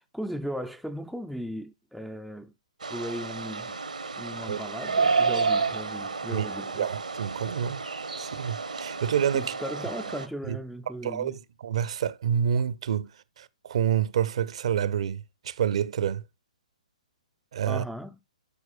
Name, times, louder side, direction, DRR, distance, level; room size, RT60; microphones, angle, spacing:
voice 1, 0.0-2.5 2.9-3.8 4.2-6.9 9.3-11.3 17.7-18.2, equal, ahead, 0.3 m, -37 dB
sound 1, 2.8-10.3, right 4 dB, 75° right, 0.9 m, -30 dB
voice 2, 6.8-7.8 8.2-9.5 10.5-10.6 11.0-16.2 17.5-17.8, right 9 dB, 50° right, 0.5 m, -28 dB
12.0 x 4.6 x 2.4 m
figure-of-eight pair, 125°, 4 cm